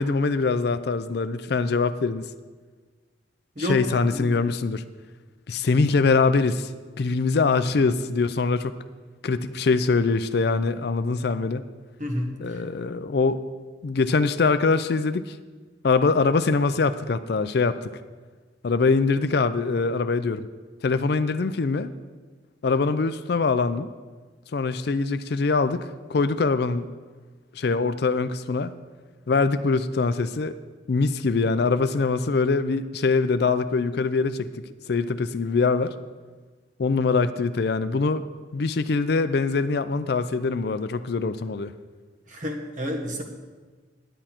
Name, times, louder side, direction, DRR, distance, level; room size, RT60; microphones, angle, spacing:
voice 1, 0.0-2.3 3.6-4.8 5.5-6.7 7.0-8.7 9.2-11.6 12.4-13.4 13.8-15.4 15.8-17.8 18.6-20.5 20.8-21.9 22.6-23.9 24.5-26.9 27.5-28.7 29.3-30.5 30.9-34.5 34.9-35.9 36.8-38.2 38.5-41.7, left 4 dB, 55° left, 12 dB, 0.4 m, -23 dB
voice 2, 12.0-12.3 42.3-43.2, equal, 40° right, 2 dB, 1.4 m, -29 dB
11.0 x 10.0 x 4.4 m, 1.4 s
head